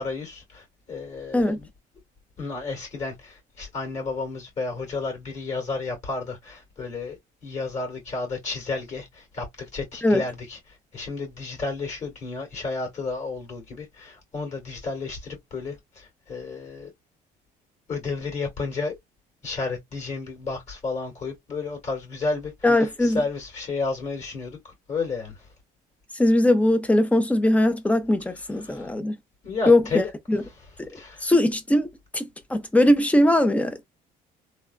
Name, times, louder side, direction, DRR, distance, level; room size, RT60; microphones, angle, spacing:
voice 1, 0.0-1.7 2.4-7.2 7.4-10.6 10.9-16.9 17.9-19.0 19.4-25.5 28.6-28.9 29.4-30.1 30.9-31.3, left 3 dB, 45° left, 2.1 m, -32 dB
voice 2, 22.6-23.2 26.1-29.2 29.7-30.4 31.2-31.9 32.1-33.8, left 1 dB, 10° left, 0.7 m, -20 dB
3.4 x 2.2 x 2.3 m
cardioid pair, 110°, 17 cm